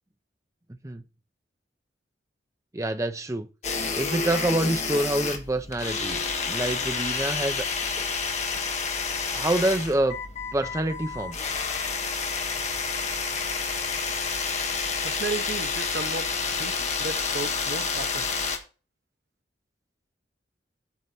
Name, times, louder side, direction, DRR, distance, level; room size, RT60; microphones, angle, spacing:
voice 1, 2.7-3.5 3.9-7.7 9.3-10.2 10.5-11.4, right 1 dB, 15° right, 0.7 m, -26 dB
sound 1, 3.6-18.6, left 5 dB, 40° left, 1.3 m, -29 dB
voice 2, 15.0-18.3, right 3 dB, 60° right, 1.0 m, -34 dB
8.5 x 4.1 x 5.9 m
head